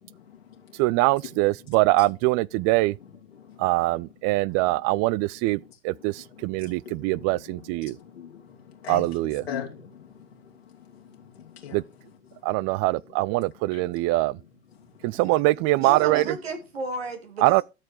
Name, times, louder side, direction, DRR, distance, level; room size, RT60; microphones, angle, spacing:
voice 1, 0.1-0.4 3.3-3.7 4.5-5.0 6.0-10.1 10.6-11.8 12.4-12.6 13.7-13.8 15.0-15.2, left 8 dB, 85° left, 2.5 m, -42 dB
voice 2, 0.8-2.9 3.6-5.6 5.8-6.1 6.4-7.9 8.9-9.4 11.7-11.8 12.4-14.3 15.0-16.2 17.4-17.6, right 20 dB, 55° right, 0.5 m, -23 dB
voice 3, 15.8-17.6, right 2 dB, 85° right, 2.5 m, -34 dB
12.5 x 6.5 x 4.8 m
figure-of-eight pair, 70°, 30 cm